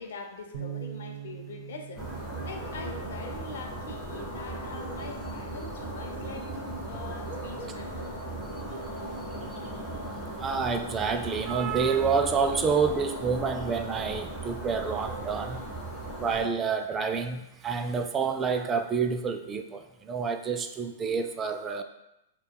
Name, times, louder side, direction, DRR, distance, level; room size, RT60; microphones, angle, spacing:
voice 1, 0.0-2.0 2.4-8.1, left 4 dB, 70° left, 3 dB, 0.7 m, -43 dB
Bass guitar, 0.5-6.8, right 11 dB, 70° right, 0.6 m, -45 dB
sound 1, 2.0-16.5, right 1 dB, 5° right, 1.4 m, -37 dB
voice 2, 10.4-15.6 16.2-21.8, right 5 dB, 20° right, 7 dB, 0.3 m, -28 dB
6.6 x 2.3 x 2.2 m, 0.88 s
hypercardioid pair, 115°, 0 cm